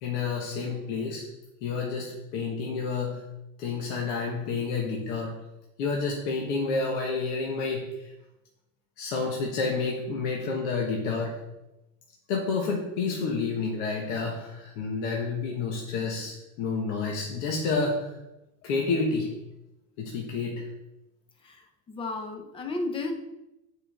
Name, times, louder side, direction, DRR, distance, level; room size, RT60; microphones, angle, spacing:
voice 1, 0.0-1.2 1.6-3.2 3.6-5.3 5.8-8.1 9.0-11.4 12.3-18.1 18.6-19.3 20.0-20.7, left 4 dB, 65° left, -1 dB, 1.2 m, -29 dB
voice 2, 21.9-23.1, left 2 dB, 15° left, 5 dB, 0.5 m, -33 dB
8.3 x 4.7 x 3.4 m, 0.95 s
cardioid pair, 165°, 38 cm